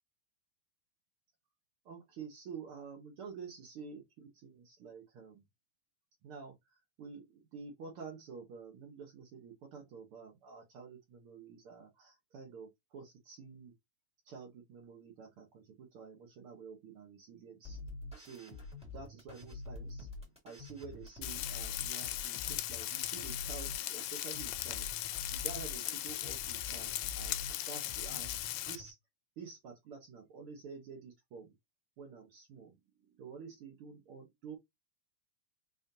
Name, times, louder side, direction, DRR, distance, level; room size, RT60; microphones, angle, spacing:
voice 1, 1.8-5.4 6.2-13.7 14.2-17.8 18.1-18.6 18.9-20.1 20.4-27.4 27.7-28.3 28.6-29.0 29.4-31.5 32.0-34.6, right 5 dB, 70° right, 1.3 m, -49 dB
sound 1, 17.6-28.9, left 2 dB, ahead, 1.9 m, -47 dB
Frying (food), 21.2-28.8, left 15 dB, 80° left, 2.1 m, -38 dB
5.2 x 3.7 x 2.7 m
omnidirectional pair, 4.0 m